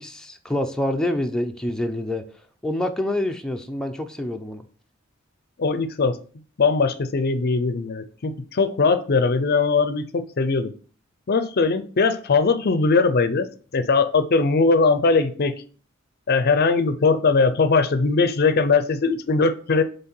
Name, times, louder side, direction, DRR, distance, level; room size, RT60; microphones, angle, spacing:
voice 1, 0.0-2.2 2.6-4.6, left 1 dB, 5° left, 0.5 m, -26 dB
voice 2, 5.6-6.2 6.6-10.7 11.3-13.5 13.7-15.5 16.3-19.8, left 4 dB, 50° left, 0.5 m, -20 dB
7.6 x 3.3 x 4.4 m
head